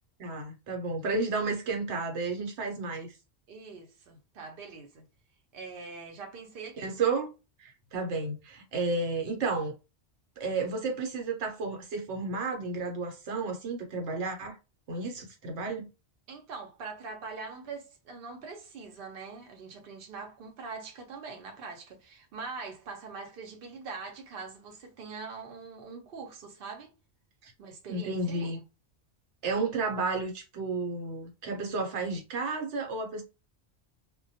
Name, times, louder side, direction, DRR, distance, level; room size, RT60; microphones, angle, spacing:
voice 1, 0.2-3.1 6.8-7.3 7.6-9.7 10.4-14.6 14.9-15.9 27.4-27.5 27.9-28.6 29.4-33.2, right 3 dB, 85° right, 1.0 m, -32 dB
voice 2, 3.5-5.0 5.5-6.9 16.3-26.9 27.6-28.5, right 4 dB, 60° right, 0.8 m, -43 dB
2.2 x 2.2 x 2.6 m
omnidirectional pair, 1.1 m